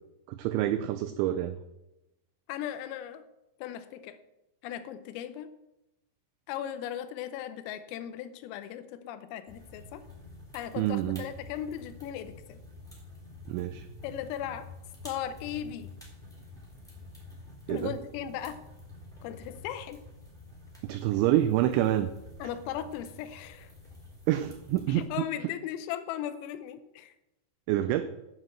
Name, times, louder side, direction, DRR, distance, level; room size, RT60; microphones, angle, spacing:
voice 1, 0.3-1.6 10.8-11.2 13.5-13.9 17.7-17.9 20.8-22.1 24.3-25.1 27.7-28.1, right 13 dB, 90° right, 11 dB, 2.6 m, -27 dB
voice 2, 2.5-3.2 3.6-4.2 4.6-5.5 6.5-10.0 10.5-12.6 14.0-14.7 15.0-15.9 17.7-18.6 19.2-20.0 22.4-23.7 24.9-27.1, left 10 dB, 90° left, 11 dB, 3.4 m, -37 dB
sound 1, 9.5-25.1, left 2 dB, ahead, 2.2 m, -49 dB
9.7 x 6.3 x 7.6 m, 0.93 s
omnidirectional pair, 5.9 m